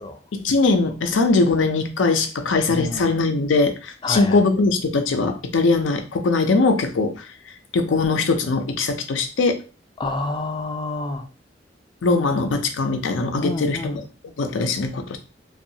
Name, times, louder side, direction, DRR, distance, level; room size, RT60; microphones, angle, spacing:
voice 1, 0.3-7.1 7.7-9.6 12.0-13.8 14.4-15.2, left 3 dB, 90° left, 6 dB, 0.5 m, -21 dB
voice 2, 2.7-3.1 4.0-4.4 10.0-11.3 13.4-14.1, left 2 dB, 25° left, 5 dB, 0.4 m, -28 dB
2.6 x 2.3 x 2.7 m, 0.34 s
head